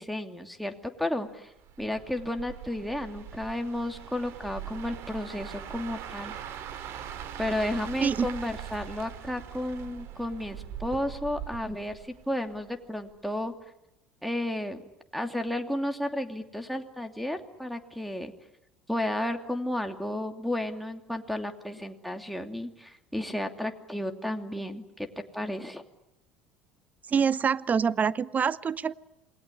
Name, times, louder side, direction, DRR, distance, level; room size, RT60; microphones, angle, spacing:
voice 1, 0.0-1.5 1.8-6.3 7.4-13.5 14.2-14.8 15.1-18.3 18.9-25.1 25.3-25.8, left 1 dB, ahead, 4 dB, 2.8 m, -32 dB
sound 1, 1.6-12.7 13.1-13.4, right 10 dB, 55° right, 2.9 m, -41 dB
voice 2, 27.1-28.9, right 6 dB, 30° right, 18 dB, 1.0 m, -25 dB
28.0 x 20.5 x 10.0 m, 0.86 s
hypercardioid pair, 70°, 5 cm